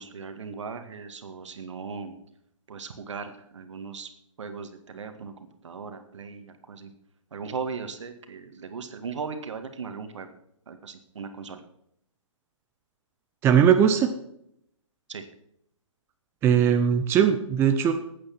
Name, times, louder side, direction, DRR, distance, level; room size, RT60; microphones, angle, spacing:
voice 1, 0.0-2.2 2.7-4.1 4.4-5.3 5.6-6.9 7.3-10.3 10.7-11.6 15.1-15.3, right 5 dB, 65° right, 8 dB, 2.0 m, -38 dB
voice 2, 13.4-14.1 16.4-17.9, right 8 dB, 15° right, 6 dB, 0.8 m, -19 dB
13.0 x 8.9 x 6.1 m, 0.75 s
hypercardioid pair, 140°, 16 cm